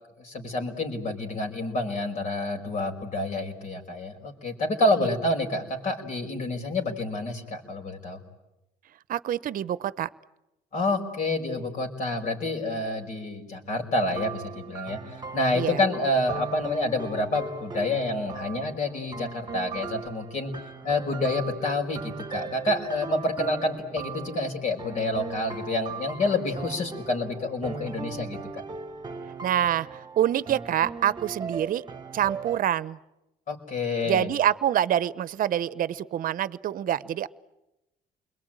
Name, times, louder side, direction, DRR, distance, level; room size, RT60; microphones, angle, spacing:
voice 1, 0.2-8.2 10.7-15.0 15.3-20.5 20.8-28.6 33.5-34.3, left 2 dB, 45° left, 3 dB, 5.2 m, -28 dB
voice 2, 9.1-10.1 15.5-15.8 29.4-31.8 32.1-33.0 34.1-37.3, right 11 dB, 55° right, 17 dB, 0.9 m, -26 dB
sound 1, 14.1-32.6, right 5 dB, 25° right, 1.6 m, -39 dB
29.0 x 22.0 x 9.1 m, 0.95 s
cardioid pair, 110°, 17 cm